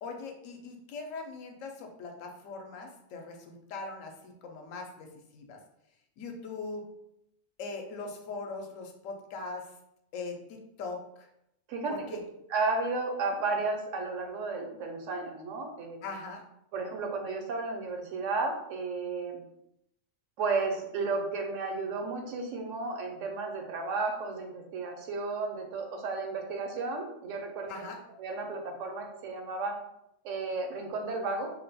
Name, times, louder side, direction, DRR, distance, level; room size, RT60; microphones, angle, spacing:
voice 1, 0.0-5.6 6.2-6.8 7.6-9.7 10.1-11.3 11.9-12.2 16.0-16.4 27.7-28.0, left 3 dB, 80° left, 3 dB, 1.0 m, -41 dB
voice 2, 12.5-16.0 16.7-19.4 20.4-27.9 28.2-29.7 30.2-31.5, right 3 dB, 75° right, 2 dB, 1.0 m, -33 dB
2.6 x 2.2 x 4.0 m, 0.79 s
omnidirectional pair, 1.3 m